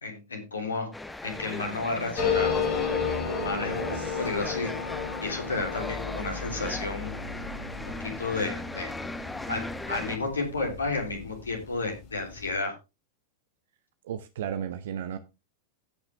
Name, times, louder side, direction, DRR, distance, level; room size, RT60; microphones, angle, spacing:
voice 1, 0.0-0.9 1.2-2.5 3.4-4.7 5.2-7.1 8.0-8.9 9.5-12.7, left 3 dB, 75° left, 3.3 m, -32 dB
sound 1, 0.9-10.2, left 2 dB, 5° left, 1.1 m, -38 dB
sound 2, 2.2-11.3 11.6-11.7 11.9-12.5, left 5 dB, 40° left, 4.3 m, -33 dB
voice 2, 14.0-15.2, right 9 dB, 60° right, 0.8 m, -34 dB
17.0 x 5.9 x 3.4 m
figure-of-eight pair, 90°, 0 cm